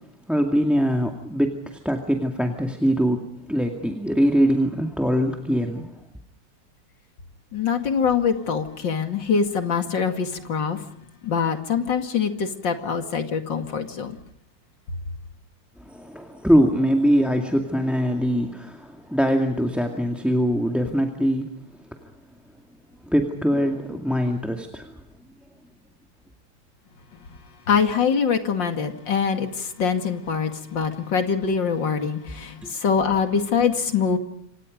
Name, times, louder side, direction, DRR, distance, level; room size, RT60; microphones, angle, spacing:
voice 1, 0.3-5.9 15.8-21.6 21.9-22.1 23.0-25.0 32.6-32.7, equal, ahead, 4 dB, 2.1 m, -23 dB
voice 2, 7.5-10.8 11.2-14.1 27.7-34.2, left 6 dB, 70° left, 6 dB, 2.9 m, -24 dB
28.0 x 26.0 x 5.2 m, 0.73 s
omnidirectional pair, 2.0 m